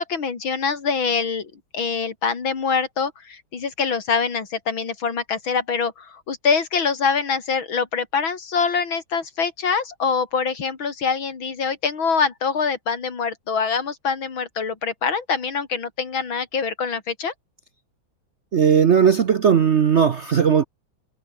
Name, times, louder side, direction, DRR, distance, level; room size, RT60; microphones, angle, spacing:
voice 1, 0.0-17.3, left 5 dB, 80° left, 3.6 m, -24 dB
voice 2, 18.5-20.6, right 7 dB, 55° right, 0.8 m, -17 dB
omnidirectional pair, 2.1 m